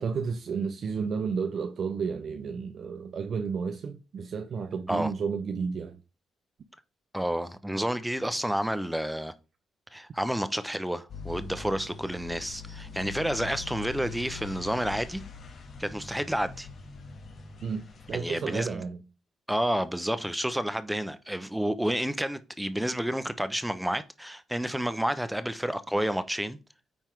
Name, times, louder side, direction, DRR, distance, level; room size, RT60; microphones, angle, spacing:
voice 1, 0.0-6.0 17.6-19.0, right 5 dB, 55° right, 0.7 m, -32 dB
voice 2, 7.1-9.3 9.9-15.2 15.8-16.7 18.1-18.8 19.5-26.6, equal, 5° right, 0.8 m, -30 dB
sound 1, 11.1-18.2, left 5 dB, 50° left, 1.9 m, -43 dB
9.3 x 3.7 x 4.6 m
cardioid pair, 90°, 0 cm